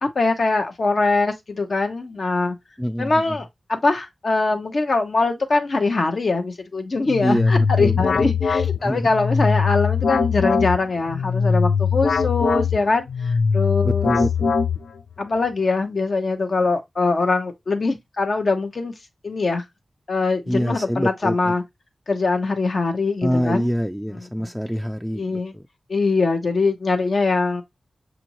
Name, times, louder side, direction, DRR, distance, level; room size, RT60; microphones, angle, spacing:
voice 1, 0.0-2.5 3.0-14.1 15.2-18.9 19.2-19.6 20.1-21.6 22.1-23.7 24.4-24.5 25.1-25.5 25.9-27.6, left 3 dB, 65° left, 0.9 m, -22 dB
voice 2, 2.8-3.4 7.2-8.3 8.8-9.1 13.8-14.6 20.5-21.5 23.2-25.6, equal, ahead, 0.3 m, -25 dB
sound 1, 7.1-15.1, left 5 dB, 85° left, 0.4 m, -21 dB
6.2 x 2.6 x 2.9 m
cardioid pair, 50°, 0 cm